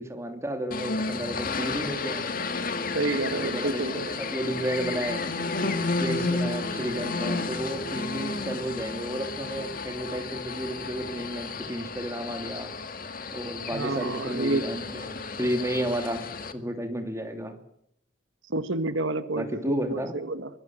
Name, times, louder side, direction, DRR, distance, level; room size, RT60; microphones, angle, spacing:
voice 1, 0.0-2.3 3.3-3.8 4.2-5.2 6.0-12.7 13.3-16.3 16.5-17.5 19.4-20.1, right 1 dB, 15° right, 5 dB, 3.1 m, -32 dB
sound 1, 0.7-16.5, left 3 dB, 45° left, 1.9 m, -32 dB
voice 2, 2.9-4.2 13.7-14.6 18.5-20.5, right 2 dB, 80° right, 10 dB, 1.7 m, -29 dB
24.5 x 21.0 x 7.8 m, 0.74 s
head